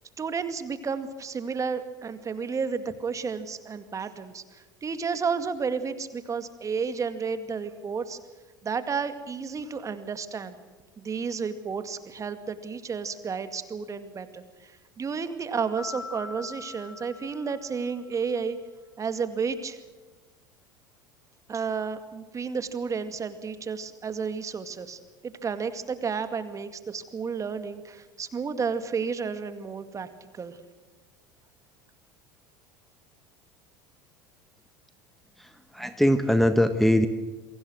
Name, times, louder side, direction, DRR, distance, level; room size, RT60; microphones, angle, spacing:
voice 1, 0.2-8.2 8.6-10.6 11.0-18.6 19.0-19.8 21.5-30.1 30.3-30.6, right 5 dB, 30° right, 10 dB, 2.1 m, -32 dB
Mallet percussion, 15.8-18.1, left 4 dB, 85° left, 2.5 m, -42 dB
voice 2, 35.4-37.1, equal, ahead, 9 dB, 1.5 m, -22 dB
28.5 x 23.0 x 6.3 m, 1.2 s
hypercardioid pair, 75°, 11 cm